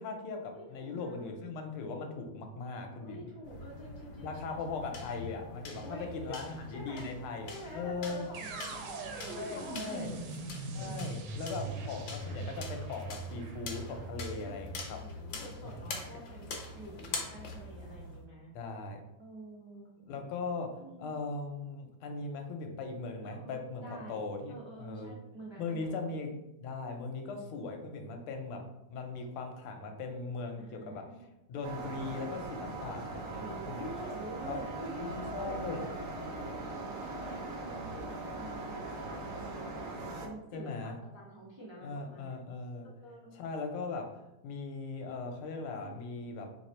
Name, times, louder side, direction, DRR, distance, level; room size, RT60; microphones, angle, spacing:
voice 1, 0.0-3.2 4.2-8.3 9.3-10.2 10.7-15.0 15.6-16.0 18.5-19.0 20.1-23.8 24.1-25.1 25.6-26.3 26.6-28.6 28.9-31.1 31.5-33.9 34.4-34.6 35.0-35.9 40.5-41.0 41.8-42.9 43.3-44.1 44.4-46.5, left 4 dB, 85° left, 4 dB, 1.6 m, -39 dB
voice 2, 0.5-1.3 3.0-5.0 5.8-7.1 7.5-10.2 10.7-12.4 14.2-18.5 19.2-19.9 20.8-21.1 23.2-24.2 24.5-26.1 30.5-31.3 33.4-35.9 36.3-39.8 40.2-42.3 43.0-43.3 45.8-46.2, right 1 dB, 35° right, -7 dB, 0.4 m, -48 dB
sound 1, 3.4-18.2, left 3 dB, 70° left, 1.5 m, -45 dB
sound 2, 8.3-16.3, right 3 dB, 80° right, 1.5 m, -41 dB
sound 3, 31.6-40.3, right 2 dB, 65° right, 0.8 m, -40 dB
4.0 x 3.0 x 4.2 m, 0.94 s
omnidirectional pair, 2.3 m